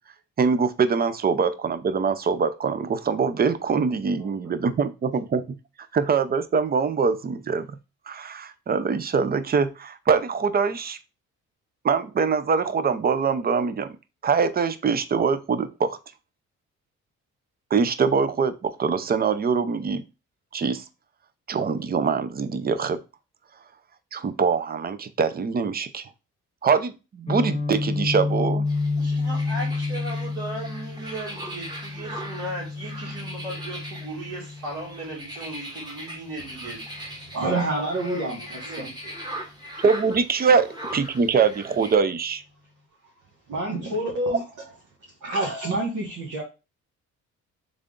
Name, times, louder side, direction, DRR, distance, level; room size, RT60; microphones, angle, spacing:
voice 1, 0.4-5.6 5.9-7.7 8.1-11.0 11.8-13.9 14.2-16.0 17.7-20.0 20.5-20.8 21.5-23.0 24.1-26.0 26.6-28.7 39.8-42.4, right 5 dB, 30° right, 12 dB, 0.5 m, -23 dB
Guitar, 27.3-35.1, left 3 dB, 20° left, 0.6 m, -29 dB
sound 1, 28.7-42.0, right 1 dB, 15° right, 1.3 m, -40 dB
voice 2, 29.0-36.8 37.4-39.2, right 1 dB, 60° right, -7 dB, 2.2 m, -37 dB
voice 3, 37.2-38.9 43.5-44.4 45.2-46.4, right 2 dB, 75° right, -3 dB, 1.4 m, -27 dB
3.7 x 3.4 x 3.7 m, 0.29 s
cardioid pair, 90°, 30 cm